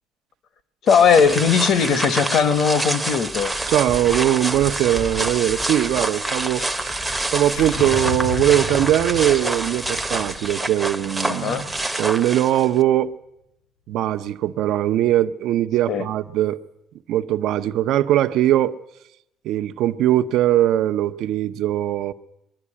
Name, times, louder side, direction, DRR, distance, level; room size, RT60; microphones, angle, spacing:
voice 1, 0.8-3.5 11.3-11.6 15.9-16.0, left 6 dB, 45° left, 1.2 m, -18 dB
sound 1, 0.9-12.8, right 2 dB, 5° right, 0.8 m, -27 dB
voice 2, 3.7-7.1 7.3-11.7 12.0-13.1 13.9-16.6 17.1-18.8 19.4-22.1, right 12 dB, 65° right, 0.8 m, -20 dB
sound 2, 7.4-11.7, left 4 dB, 85° left, 7.4 m, -32 dB
22.0 x 12.5 x 9.8 m
cardioid pair, 175°, 0 cm